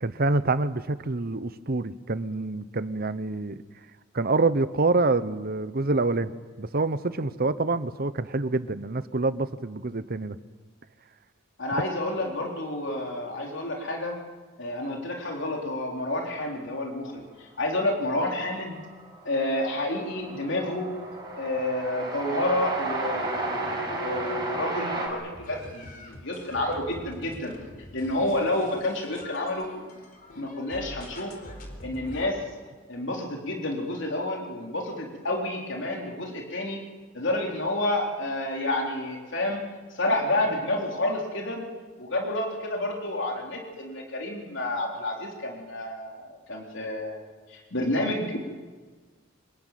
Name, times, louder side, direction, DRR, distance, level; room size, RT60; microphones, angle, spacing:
voice 1, 0.0-3.6 4.1-6.3 6.6-10.4, right 3 dB, 45° right, 14 dB, 1.0 m, -26 dB
voice 2, 11.6-14.1 14.6-18.8 19.2-20.9 21.4-27.5 27.9-29.7 30.4-31.3 31.8-32.4 32.9-36.8 37.1-39.6 39.9-41.6 42.0-48.4, left 1 dB, 60° left, 0 dB, 4.0 m, -29 dB
Train, 17.7-17.8 17.9-25.1, right 2 dB, 20° right, 6.3 m, -34 dB
sound 1, 25.3-32.3, left 1 dB, 45° left, 4.2 m, -45 dB
25.5 x 21.0 x 9.3 m, 1.4 s
head